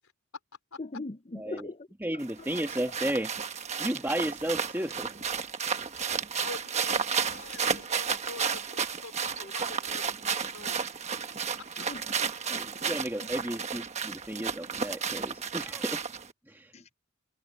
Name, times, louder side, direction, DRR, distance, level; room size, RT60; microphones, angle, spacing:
voice 1, 0.8-1.7 11.9-12.9 16.7-16.8, left 2 dB, 30° left, 0.7 m, -40 dB
voice 2, 1.4-1.7 2.0-3.4 3.8-5.2 12.5-16.0 16.5-16.7, right 1 dB, 10° right, 1.7 m, -33 dB
sound 1, 2.2-16.3, right 6 dB, 30° right, 1.2 m, -32 dB
voice 3, 6.4-10.8, left 3 dB, 90° left, 3.6 m, -46 dB
head